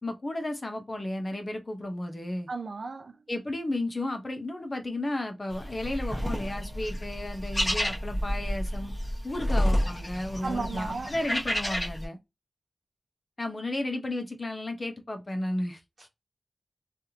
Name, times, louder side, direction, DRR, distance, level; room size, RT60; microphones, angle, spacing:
voice 1, 0.0-2.5 3.3-8.9 9.2-12.2 13.4-16.1, left 1 dB, 35° left, 0.9 m, -33 dB
voice 2, 2.5-3.1 10.4-11.1, right 4 dB, 65° right, 0.6 m, -34 dB
sound 1, 5.5-12.0, equal, 20° left, 1.2 m, -30 dB
3.3 x 2.5 x 2.8 m
wide cardioid pair, 85°, 0 cm